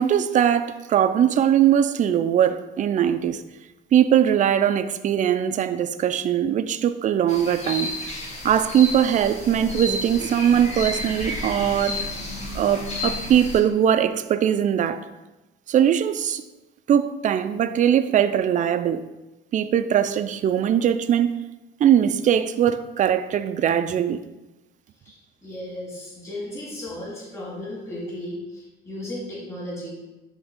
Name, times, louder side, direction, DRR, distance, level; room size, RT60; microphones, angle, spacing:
voice 1, 0.0-3.4 3.9-7.9 8.4-12.1 12.5-15.1 15.7-16.4 16.9-19.0 19.5-21.3 21.8-24.2, right 9 dB, 40° right, 0.4 m, -21 dB
sound 1, 7.3-13.6, left 1 dB, 35° left, 1.8 m, -31 dB
voice 2, 25.0-30.0, left 1 dB, 15° left, 2.3 m, -35 dB
10.0 x 3.5 x 3.6 m
cardioid pair, 110°, 20 cm